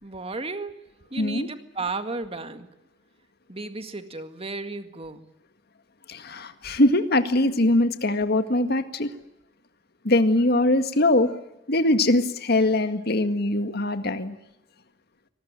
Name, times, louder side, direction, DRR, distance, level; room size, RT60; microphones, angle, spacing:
voice 1, 0.0-0.8 1.1-2.7 3.5-5.3, right 3 dB, 30° right, 9 dB, 2.0 m, -34 dB
voice 2, 1.2-1.5 6.1-9.1 10.0-11.3 11.7-14.3, left 1 dB, 60° left, 9 dB, 1.9 m, -22 dB
24.5 x 19.5 x 9.2 m, 0.89 s
head